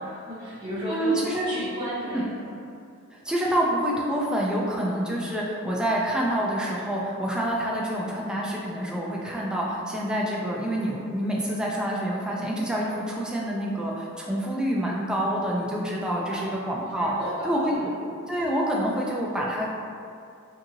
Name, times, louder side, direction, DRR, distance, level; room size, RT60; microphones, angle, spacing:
voice 1, 0.0-2.5 16.0-16.5 16.9-17.8, equal, 25° right, -10 dB, 0.8 m, -34 dB
voice 2, 0.9-1.5 2.1-2.2 3.1-17.1 17.4-17.9 18.3-19.7, right 1 dB, 5° right, -4 dB, 0.3 m, -27 dB
2.7 x 2.6 x 2.6 m, 2.4 s
head